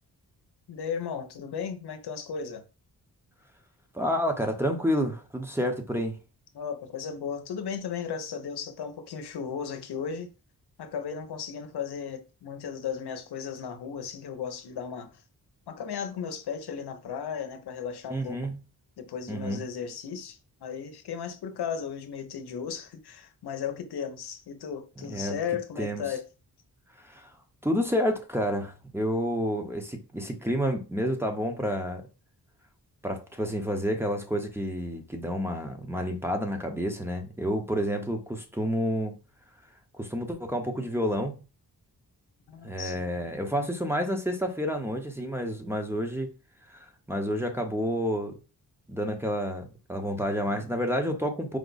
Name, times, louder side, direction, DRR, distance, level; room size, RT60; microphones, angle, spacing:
voice 1, 0.7-2.6 6.5-10.3 10.8-15.2 15.7-18.5 19.0-26.2 42.5-43.1 50.4-50.7, left 7 dB, 90° left, 0.8 m, -35 dB
voice 2, 3.9-6.2 18.1-18.6 19.3-19.6 25.0-25.4 25.8-26.0 27.0-27.3 27.6-32.1 33.0-39.1 39.9-41.3 42.6-46.3 46.7-48.4 48.9-51.6, equal, 5° right, 0.8 m, -29 dB
4.9 x 2.2 x 4.0 m
wide cardioid pair, 95°, 38 cm